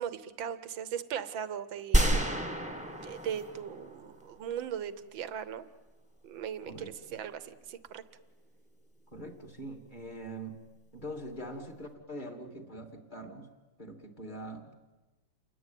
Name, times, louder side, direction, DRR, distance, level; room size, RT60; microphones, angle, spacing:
voice 1, 0.0-2.2 3.0-5.7 6.2-8.0, right 8 dB, 90° right, 13 dB, 1.9 m, -38 dB
sound 1, 1.9-4.3, right 1 dB, 5° right, 1.8 m, -29 dB
voice 2, 6.7-7.2 9.1-10.6 10.9-13.5 13.8-14.7, right 1 dB, 25° left, 5 dB, 3.0 m, -43 dB
29.0 x 20.5 x 9.3 m, 1.2 s
omnidirectional pair, 2.1 m